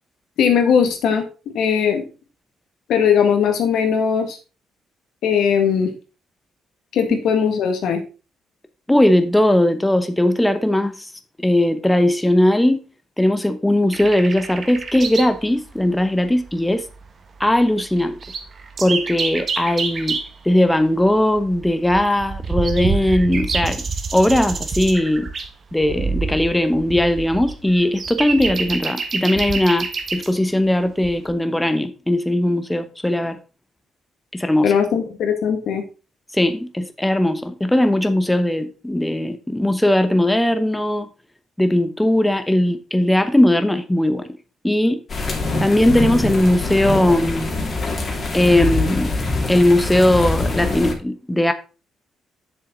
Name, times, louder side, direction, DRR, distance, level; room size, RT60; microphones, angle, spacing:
voice 1, 0.4-2.0 2.9-4.4 5.2-5.9 6.9-8.0 34.6-35.8, left 7 dB, 80° left, 1.9 m, -19 dB
voice 2, 8.9-11.1 11.4-12.8 13.2-16.8 17.4-18.2 18.8-20.2 20.4-23.8 24.1-25.3 25.7-33.4 34.3-34.7 36.3-41.1 41.6-44.3 44.6-45.0 45.6-47.5 48.3-49.1 49.5-51.5, left 1 dB, 10° left, 0.9 m, -18 dB
sound 1, 13.9-15.4 15.7-15.8 16.5-16.6 16.7-17.1 17.6-17.7 17.9-20.4 21.0-30.3 31.0-31.3, right 4 dB, 45° right, 1.5 m, -27 dB
sound 2, 45.1-50.9, left 2 dB, 40° left, 2.4 m, -24 dB
7.6 x 7.0 x 3.9 m
cardioid pair, 90°, 0 cm